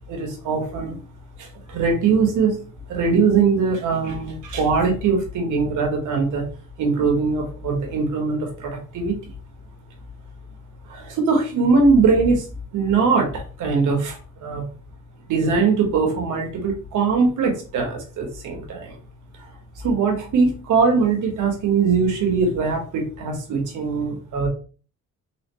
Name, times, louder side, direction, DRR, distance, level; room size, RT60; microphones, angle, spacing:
voice 1, 0.1-1.0 1.4-2.6 2.9-6.4 6.8-9.2 10.9-12.4 12.7-14.6 15.3-19.0 19.8-24.5, right 4 dB, 80° right, 2 dB, 1.5 m, -21 dB
3.9 x 3.3 x 3.1 m, 0.38 s
cardioid pair, 90°, 30 cm